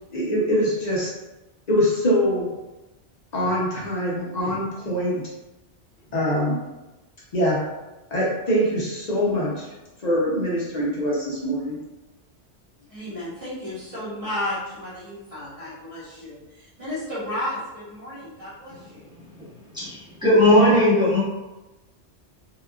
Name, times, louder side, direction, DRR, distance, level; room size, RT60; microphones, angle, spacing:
voice 1, 0.1-1.1 1.7-2.5 3.3-5.2 6.1-6.6 7.3-7.6 8.1-9.7 10.0-11.8, equal, 45° left, -5 dB, 0.6 m, -23 dB
voice 2, 12.8-19.1, left 1 dB, 30° right, -9 dB, 0.9 m, -33 dB
voice 3, 19.7-21.2, left 1 dB, 5° right, -10 dB, 0.9 m, -18 dB
2.8 x 2.3 x 2.3 m, 1.0 s
omnidirectional pair, 1.2 m